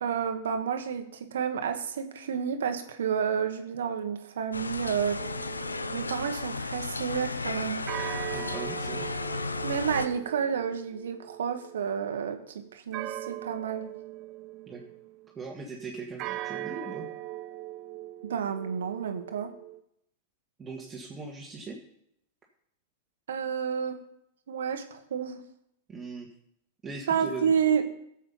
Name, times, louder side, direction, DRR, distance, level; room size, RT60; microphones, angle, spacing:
voice 1, 0.0-5.2 5.9-7.9 9.6-13.9 18.2-19.5 23.3-24.0 24.5-25.4 27.1-27.8, right 7 dB, 70° right, 7 dB, 1.3 m, -30 dB
sound 1, 4.5-10.1, left 3 dB, 85° left, 0.6 m, -34 dB
sound 2, 5.2-6.7 7.9-15.4 16.2-19.8, right 15 dB, 40° right, 0.6 m, -41 dB
voice 2, 8.3-9.1 14.7-14.8 15.3-17.1 20.6-21.8 25.9-26.3 26.8-27.5, right 4 dB, 20° right, -1 dB, 1.7 m, -39 dB
11.5 x 7.4 x 5.6 m, 0.74 s
figure-of-eight pair, 95°, 0 cm